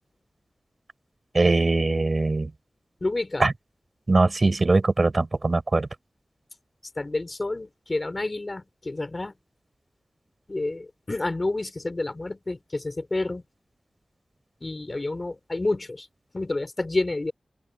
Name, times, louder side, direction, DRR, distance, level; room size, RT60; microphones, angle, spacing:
voice 1, 1.3-2.5 3.4-3.5 4.1-5.9, right 3 dB, 45° right, 5.8 m, -21 dB
voice 2, 3.0-3.5 7.0-9.3 10.5-13.4 14.6-16.1 16.3-17.3, left 2 dB, 35° left, 3.9 m, -29 dB
open air
wide cardioid pair, 80°, 0 cm